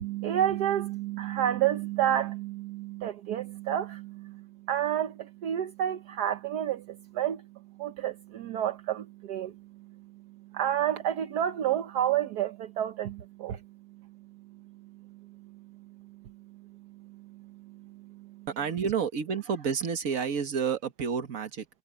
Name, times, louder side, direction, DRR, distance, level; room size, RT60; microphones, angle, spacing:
voice 1, 0.0-7.4 7.8-9.5 10.5-13.6 18.2-18.3, right 11 dB, 70° right, 1.4 m, -30 dB
voice 2, 18.5-21.7, right 6 dB, 55° right, 1.8 m, -30 dB
omnidirectional pair, 1.8 m